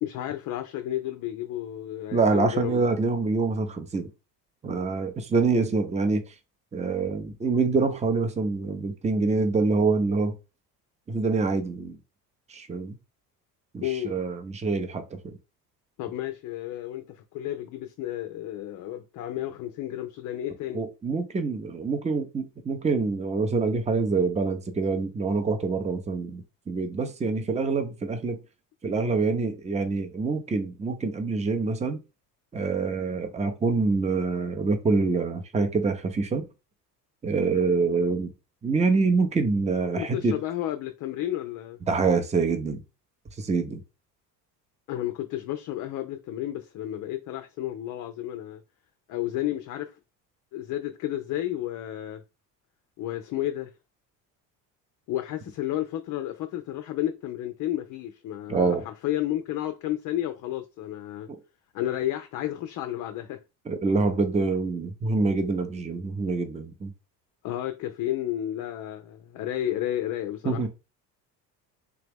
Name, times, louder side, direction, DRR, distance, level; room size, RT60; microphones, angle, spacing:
voice 1, 0.0-2.8 13.8-14.2 16.0-20.8 40.0-41.8 44.9-48.6 49.1-50.0 50.5-52.2 53.0-53.7 55.1-61.3 61.7-63.4 67.4-70.7, left 13 dB, 40° left, 0.5 m, -32 dB
voice 2, 2.1-4.1 4.6-6.3 6.7-10.3 11.1-12.0 12.5-13.0 13.7-15.4 20.7-28.4 28.8-32.0 32.5-36.5 37.2-38.3 38.6-40.4 41.9-42.8 43.4-43.8 58.5-58.8 63.7-66.9 70.4-70.7, right 4 dB, 15° right, 0.7 m, -26 dB
3.5 x 2.8 x 3.5 m
hypercardioid pair, 60°, 49 cm